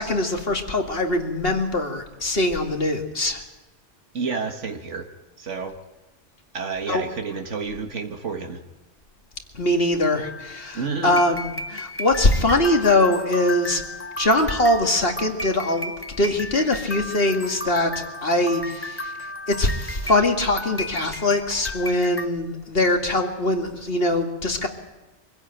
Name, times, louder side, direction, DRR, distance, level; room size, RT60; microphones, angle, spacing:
voice 1, 0.0-3.4 6.9-7.1 9.5-13.8 14.2-19.1 19.5-24.7, left 1 dB, 55° left, 3 dB, 2.5 m, -22 dB
voice 2, 4.1-5.1 5.4-5.7 6.5-8.6 10.7-11.2, right 5 dB, 85° right, 4 dB, 2.0 m, -30 dB
sound 1, 10.2-22.3, left 1 dB, 15° left, 0.7 m, -35 dB
24.5 x 16.0 x 9.0 m, 1.1 s
omnidirectional pair, 1.2 m